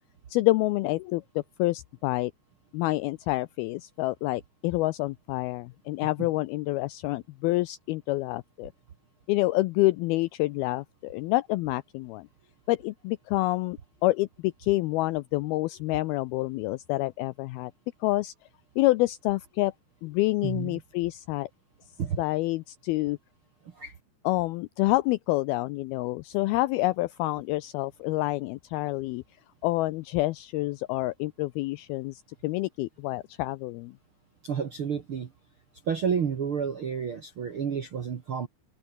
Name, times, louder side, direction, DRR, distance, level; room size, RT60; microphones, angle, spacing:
voice 1, 0.3-2.3 2.7-8.7 9.3-12.3 12.7-17.7 18.0-18.3 18.8-19.7 20.0-21.5 22.2-23.2 24.2-29.2 29.6-33.9, left 19 dB, 85° left, 2.2 m, -28 dB
voice 2, 20.4-20.8 22.0-22.2 23.7-23.9 34.4-35.3 35.9-38.5, right 7 dB, 65° right, 1.3 m, -30 dB
open air
omnidirectional pair, 5.0 m